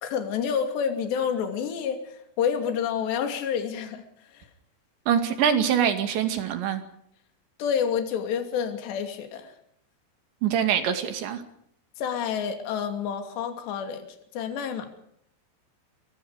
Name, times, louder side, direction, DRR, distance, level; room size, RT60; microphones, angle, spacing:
voice 1, 0.0-4.0 4.3-4.5 7.6-9.5 12.0-14.1 14.3-14.9, left 7 dB, 60° left, 6 dB, 4.7 m, -28 dB
voice 2, 5.1-6.8 10.4-11.4, right 8 dB, 65° right, 8 dB, 4.3 m, -24 dB
28.0 x 23.0 x 5.1 m, 0.69 s
omnidirectional pair, 5.9 m